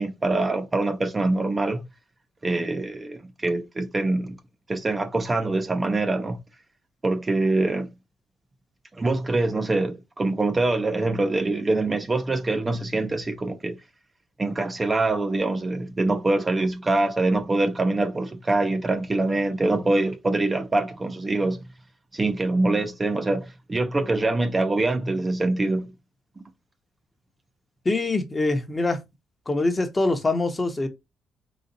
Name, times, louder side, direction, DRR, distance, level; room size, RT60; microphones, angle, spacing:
voice 1, 0.0-1.8 2.4-4.4 4.7-6.4 7.0-7.9 8.9-13.8 14.4-21.6 22.1-25.9, right 2 dB, 25° right, 0.6 m, -24 dB
voice 2, 27.8-29.0 29.5-30.9, left 2 dB, 25° left, 0.9 m, -24 dB
4.0 x 2.5 x 4.0 m
cardioid pair, 90°, 0 cm